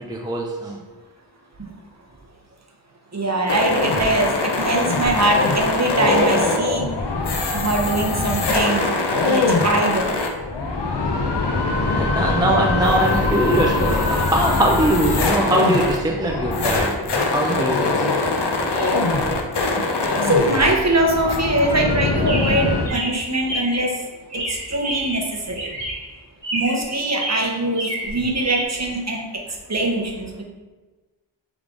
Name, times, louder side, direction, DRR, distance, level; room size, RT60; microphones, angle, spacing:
voice 1, 0.1-0.8 11.9-18.4, right 1 dB, 10° right, 0 dB, 0.4 m, -22 dB
voice 2, 3.1-6.8 7.5-8.9 9.2-10.2 19.8-19.9 20.2-24.0 24.3-25.7 26.5-30.4, right 2 dB, 35° right, 0 dB, 0.8 m, -22 dB
sound 1, 3.5-22.9, left 3 dB, 55° left, 0.7 m, -22 dB
Chirp tweet, 22.3-23.9 24.3-25.3 25.5-26.1 26.4-26.9 27.1-28.6, right 1 dB, 60° right, 1.4 m, -29 dB
3.6 x 3.3 x 3.7 m, 1.2 s
wide cardioid pair, 40°, 48 cm